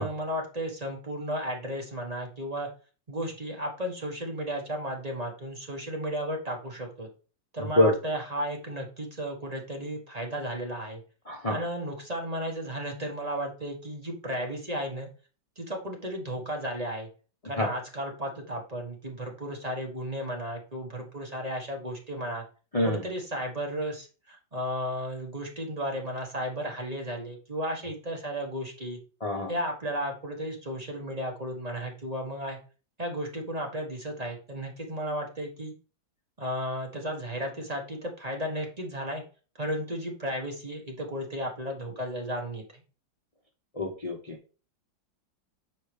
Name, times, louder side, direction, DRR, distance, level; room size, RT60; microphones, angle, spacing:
voice 1, 0.0-2.7 3.1-7.1 7.5-11.0 11.5-15.1 15.6-17.1 17.4-22.4 22.8-29.0 29.5-32.6 33.0-35.7 36.4-39.2 39.6-42.8, equal, 25° right, 0 dB, 1.0 m, -34 dB
voice 2, 11.3-11.6 17.6-17.7 22.7-23.0 29.2-29.5 43.8-44.4, left 1 dB, 60° left, 0 dB, 0.3 m, -25 dB
7.1 x 4.7 x 3.4 m, 0.36 s
omnidirectional pair, 2.2 m